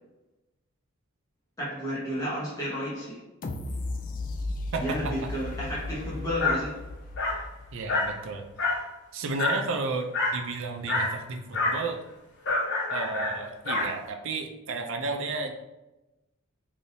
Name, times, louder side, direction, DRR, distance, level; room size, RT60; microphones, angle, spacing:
voice 1, 1.6-3.2 4.8-6.9, equal, 15° left, 1.0 m, -32 dB
sound 1, 3.4-8.3 8.8-8.9, left 2 dB, 40° left, 0.3 m, -36 dB
voice 2, 4.7-5.1 7.7-8.5 9.1-12.0 12.9-15.5, right 3 dB, 65° right, 0.4 m, -32 dB
Dog, 6.4-6.6 7.2-7.4 7.9-8.2 8.6-8.9 9.4-9.6 10.1-10.4 10.9-11.1 11.5-11.8 12.4-13.9, left 2 dB, 60° left, 1.2 m, -27 dB
3.4 x 2.7 x 2.6 m
head